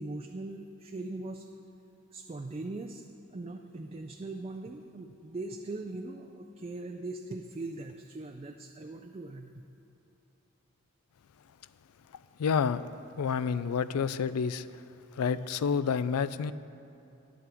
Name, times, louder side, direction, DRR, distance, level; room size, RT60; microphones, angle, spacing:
voice 1, 0.0-1.5 2.1-3.0 3.3-9.5, right 2 dB, 25° right, 4 dB, 0.4 m, -40 dB
voice 2, 12.4-12.8 13.2-14.7 15.2-16.5, left 6 dB, 85° left, 15 dB, 0.4 m, -29 dB
14.0 x 11.0 x 3.5 m, 2.9 s
head